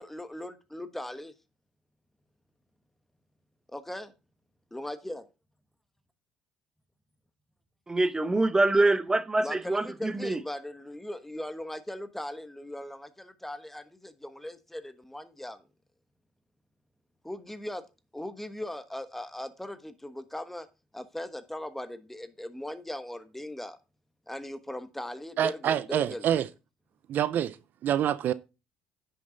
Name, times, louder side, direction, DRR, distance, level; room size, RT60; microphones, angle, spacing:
voice 1, 0.0-1.3 3.7-4.1 4.7-5.2 9.4-15.6 17.2-17.8 18.1-20.7 20.9-23.8 24.3-26.2, left 1 dB, 5° left, 1.2 m, -39 dB
voice 2, 7.9-10.4, right 2 dB, 15° right, 1.0 m, -25 dB
voice 3, 25.4-26.5 27.1-27.6 27.8-28.3, right 10 dB, 55° right, 0.5 m, -26 dB
10.0 x 6.7 x 3.9 m
supercardioid pair, 75°, 4 cm